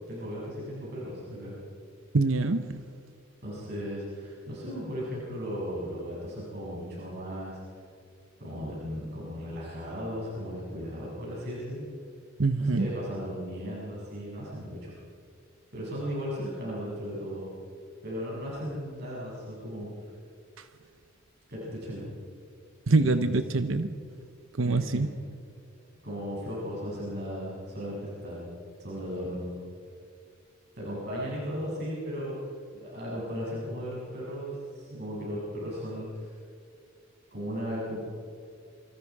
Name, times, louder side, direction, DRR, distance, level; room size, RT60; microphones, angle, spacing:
voice 1, 0.1-1.6 3.4-7.6 8.4-11.9 12.7-14.9 15.7-17.5 18.0-20.1 21.5-22.0 22.9-23.3 24.6-25.0 26.0-28.0 28.2-28.5 28.8-29.5 30.8-32.4 32.7-36.3 37.3-38.1, equal, 55° right, -6 dB, 7.5 m, -36 dB
voice 2, 2.1-2.8 12.4-12.9 20.6-20.7 22.9-24.0 24.5-25.1, right 3 dB, 75° right, 10 dB, 0.9 m, -25 dB
28.0 x 26.5 x 4.9 m, 2.3 s
head